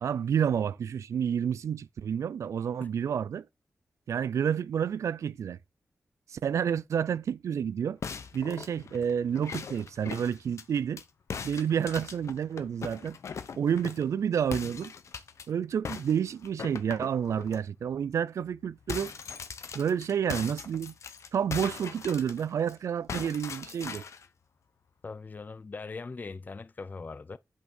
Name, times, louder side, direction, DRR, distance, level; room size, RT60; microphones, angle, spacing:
voice 1, 0.0-3.4 4.1-5.6 6.3-8.0 8.3-11.0 11.4-13.2 13.6-14.9 15.5-19.1 19.7-20.9 21.3-24.0, right 8 dB, 90° right, 0.3 m, -29 dB
sound 1, 8.0-11.0 11.3-14.1 14.5-15.4 15.8-17.6 18.0-18.2 18.4-22.7 23.1-24.3, left 6 dB, 80° left, 0.8 m, -40 dB
voice 2, 25.0-27.4, left 4 dB, 35° left, 0.4 m, -40 dB
8.5 x 3.5 x 5.2 m
cardioid pair, 70°, 5 cm